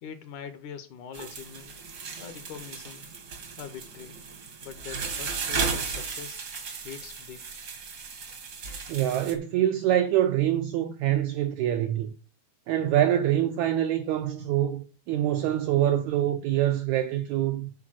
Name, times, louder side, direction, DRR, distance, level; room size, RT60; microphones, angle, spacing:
voice 1, 0.0-1.7 2.2-3.1 3.6-4.2 4.6-6.4 6.8-7.4, left 7 dB, 70° left, 2.0 m, -43 dB
sound 1, 1.1-9.3, right 5 dB, 60° right, 1.0 m, -35 dB
voice 2, 8.9-12.1 12.7-17.7, right 12 dB, 90° right, 1.6 m, -25 dB
8.6 x 4.7 x 6.1 m
omnidirectional pair, 4.1 m